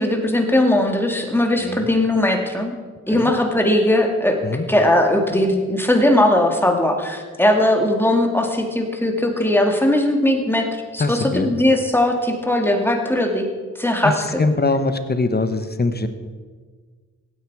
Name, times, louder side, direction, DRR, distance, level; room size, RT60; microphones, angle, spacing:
voice 1, 0.0-2.7 3.1-4.4 4.7-13.5 13.8-14.4, left 1 dB, 5° left, 3 dB, 2.2 m, -19 dB
voice 2, 11.0-11.5 14.0-14.1 14.4-16.1, left 3 dB, 30° left, 9 dB, 1.2 m, -22 dB
16.0 x 9.7 x 4.8 m, 1.5 s
cardioid pair, 65°, 33 cm